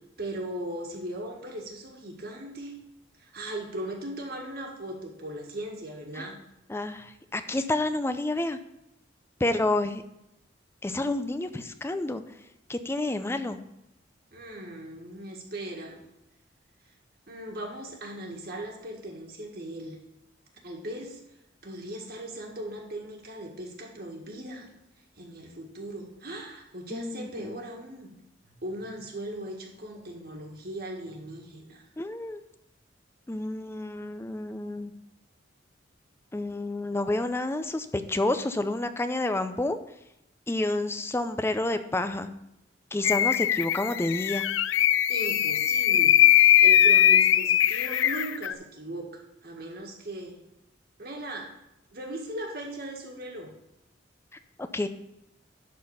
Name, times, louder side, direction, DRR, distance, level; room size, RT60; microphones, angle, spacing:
voice 1, 0.2-2.8 3.2-6.4 14.3-16.0 17.3-20.0 20.6-21.2 21.6-24.7 25.2-28.1 28.4-31.8 45.1-46.2 46.6-50.4 51.0-51.5 51.9-53.5, right 1 dB, 55° right, 0 dB, 1.8 m, -38 dB
voice 2, 6.7-8.6 9.4-10.0 10.8-12.2 12.7-13.6 26.9-27.6 32.0-32.4 33.3-34.9 36.3-39.8 40.5-42.3 42.9-44.4 54.6-54.9, left 2 dB, 15° left, 9 dB, 0.4 m, -29 dB
sound 1, 43.0-48.5, left 11 dB, 85° left, 0.4 m, -21 dB
11.5 x 4.1 x 5.5 m, 0.86 s
head